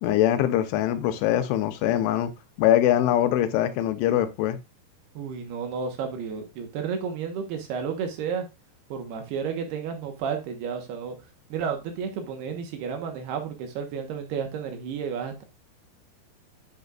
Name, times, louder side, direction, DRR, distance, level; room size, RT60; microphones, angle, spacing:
voice 1, 0.0-2.3 2.6-4.6, left 12 dB, 90° left, 3.3 m, -23 dB
voice 2, 5.1-8.5 8.9-11.2 11.5-15.4, right 6 dB, 70° right, 2.9 m, -32 dB
10.5 x 6.5 x 2.4 m
omnidirectional pair, 5.3 m